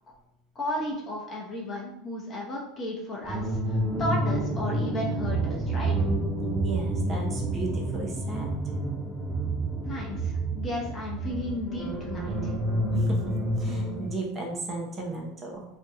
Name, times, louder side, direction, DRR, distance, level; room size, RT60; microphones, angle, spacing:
voice 1, 0.5-5.9 9.9-12.5, left 1 dB, 30° left, -2 dB, 0.7 m, -34 dB
sound 1, 3.2-14.1, right 1 dB, ahead, 1.2 m, -29 dB
voice 2, 6.6-8.5 12.9-13.2 13.5-15.7, right 3 dB, 30° right, -1 dB, 0.7 m, -35 dB
2.6 x 2.2 x 3.8 m, 0.84 s
supercardioid pair, 110°, 0 cm